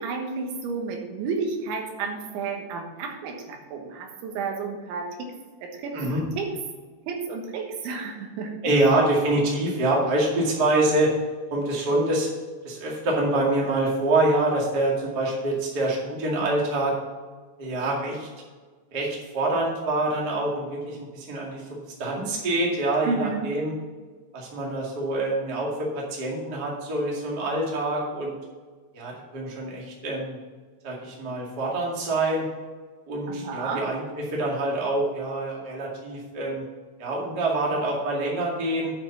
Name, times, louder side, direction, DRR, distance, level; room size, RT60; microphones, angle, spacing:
voice 1, 0.0-5.3 5.6-6.0 6.4-6.5 7.1-8.7 23.0-23.5 33.3-33.9, right 4 dB, 70° right, 2 dB, 3.5 m, -31 dB
voice 2, 8.6-11.1 11.5-12.3 12.6-16.9 17.6-18.3 18.9-21.6 22.0-23.7 24.3-28.3 28.9-30.4 30.8-32.4 33.1-34.0 34.3-36.6 37.0-38.9, right 2 dB, 45° right, -3 dB, 1.2 m, -25 dB
8.9 x 5.5 x 6.9 m, 1.4 s
omnidirectional pair, 5.7 m